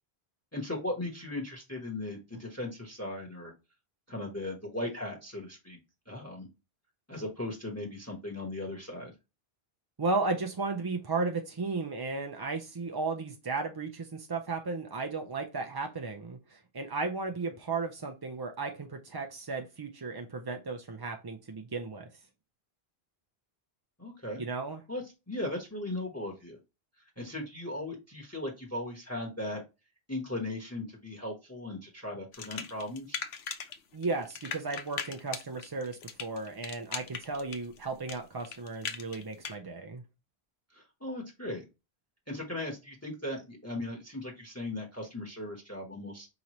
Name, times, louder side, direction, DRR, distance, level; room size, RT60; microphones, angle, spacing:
voice 1, 0.5-3.5 4.1-5.8 6.1-6.5 7.1-9.1 24.0-24.4 24.9-26.6 27.2-29.6 30.1-33.2 40.7-41.6 42.3-46.3, left 1 dB, 15° left, 1.0 m, -37 dB
voice 2, 10.0-22.1 24.4-24.8 33.9-40.0, right 3 dB, 35° right, 0.4 m, -34 dB
sound 1, 32.3-33.8 34.0-39.6, left 7 dB, 85° left, 1.0 m, -39 dB
5.1 x 2.9 x 2.9 m
omnidirectional pair, 1.0 m